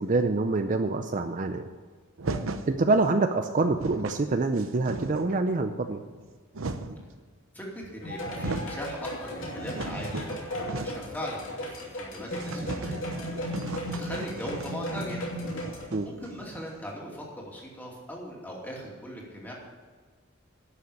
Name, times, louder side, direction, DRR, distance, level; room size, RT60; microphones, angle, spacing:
voice 1, 0.0-1.7 2.7-6.0 15.9-16.1, right 3 dB, 40° right, 7 dB, 0.5 m, -26 dB
sound 1, 2.2-2.7 3.4-3.5 3.6-4.2 4.6-5.4 6.1-7.1 7.8-7.9 8.2-8.8 9.2-11.2 11.4-11.5 11.8-11.9 12.3-16.8, right 3 dB, 85° right, 0.8 m, -37 dB
voice 2, 7.5-12.9 14.0-15.3 16.0-19.5, equal, 10° left, -3 dB, 2.6 m, -39 dB
sound 2, 8.0-15.9, equal, 70° left, 2.9 m, -36 dB
11.5 x 6.7 x 8.5 m, 1.4 s
head